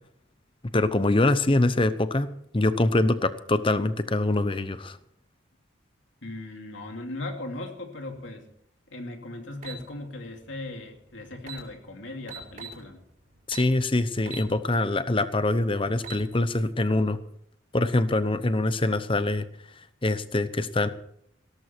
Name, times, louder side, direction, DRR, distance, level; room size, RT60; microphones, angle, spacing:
voice 1, 0.7-2.3 2.5-5.0 13.5-17.2 17.7-19.5 20.0-20.9, left 2 dB, 25° left, 12 dB, 0.8 m, -24 dB
voice 2, 6.2-8.5 8.9-13.0, left 2 dB, 70° left, 3 dB, 2.7 m, -38 dB
sound 1, 9.6-9.8 11.0-11.1 11.4-11.6 12.3-12.8 13.5-13.7 14.2-14.5 14.9-15.0 15.8-16.2, right 6 dB, 40° right, 5.1 m, -39 dB
17.5 x 13.5 x 4.5 m, 0.70 s
head